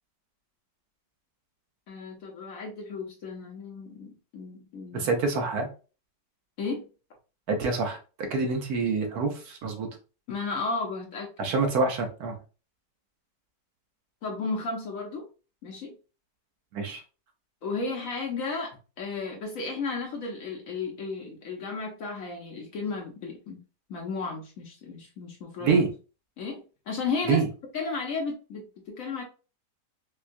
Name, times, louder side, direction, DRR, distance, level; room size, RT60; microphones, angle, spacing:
voice 1, 1.9-5.1 6.6-6.9 10.3-11.3 14.2-15.2 15.6-15.9 17.6-23.6 23.9-25.8 26.4-27.4 27.7-29.2, left 4 dB, 60° left, 1 dB, 0.9 m, -34 dB
voice 2, 4.9-5.7 7.5-8.0 8.3-9.9 11.4-12.4 16.7-17.0 25.6-25.9 27.3-27.5, right 4 dB, 65° right, 3 dB, 1.1 m, -26 dB
4.4 x 2.2 x 2.5 m, 0.34 s
omnidirectional pair, 1.8 m